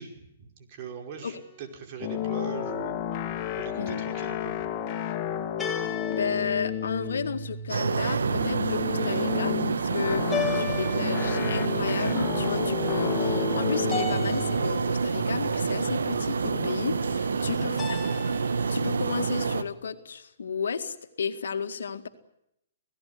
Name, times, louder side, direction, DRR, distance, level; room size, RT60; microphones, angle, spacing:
voice 1, 0.0-3.2 3.6-4.7 17.3-17.7, right 6 dB, 45° right, 4 dB, 4.9 m, -41 dB
sound 1, 1.2-1.8 5.6-7.6 10.3-11.7 13.9-15.1 17.8-18.8, left 5 dB, 5° left, 6.9 m, -36 dB
sound 2, 2.0-18.5, left 9 dB, 35° left, 2.9 m, -33 dB
voice 2, 6.1-18.1 18.7-22.1, left 6 dB, 75° left, 8 dB, 2.0 m, -33 dB
sound 3, 7.7-19.6, right 5 dB, 80° right, 1.5 m, -28 dB
27.0 x 17.5 x 9.6 m, 0.81 s
hypercardioid pair, 130°, 0 cm